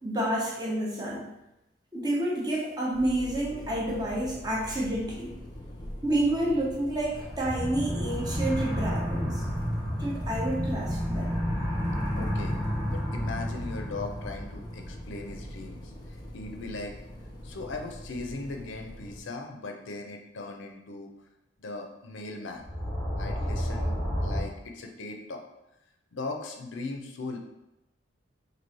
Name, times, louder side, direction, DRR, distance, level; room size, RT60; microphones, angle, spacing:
voice 1, 0.0-1.3 1.9-5.4 6.0-9.4 10.0-11.4, right 1 dB, 20° right, -3 dB, 0.7 m, -29 dB
sound 1, 2.9-19.2, equal, 20° left, 0.5 m, -43 dB
sound 2, 7.1-15.7 22.6-24.4, equal, 5° left, 1.1 m, -31 dB
voice 2, 12.2-12.6 12.9-16.9 17.4-21.1 21.6-22.6 23.2-25.5 26.1-27.4, left 3 dB, 75° left, 2 dB, 0.5 m, -39 dB
3.0 x 2.8 x 4.0 m, 0.91 s
head